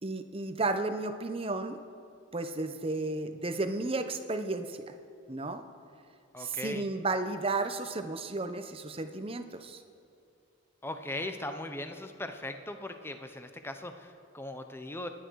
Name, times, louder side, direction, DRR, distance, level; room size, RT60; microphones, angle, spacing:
voice 1, 0.0-1.8 2.3-4.9 5.3-5.6 6.4-9.8, right 2 dB, 25° right, 8 dB, 0.9 m, -33 dB
voice 2, 6.3-6.8 10.8-15.1, left 1 dB, 10° left, 7 dB, 0.8 m, -39 dB
27.0 x 10.5 x 4.7 m, 2.6 s
head